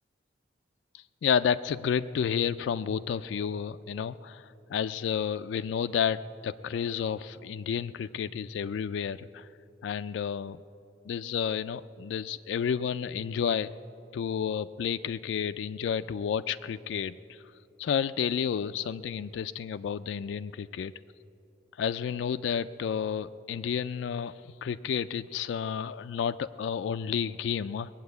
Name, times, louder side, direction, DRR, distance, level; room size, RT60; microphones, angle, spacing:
voice 1, 0.9-9.5 9.8-10.6 11.1-13.7 14.1-17.4 17.8-20.9 21.8-27.9, left 7 dB, 85° left, 11 dB, 0.3 m, -31 dB
20.0 x 8.6 x 8.1 m, 2.8 s
head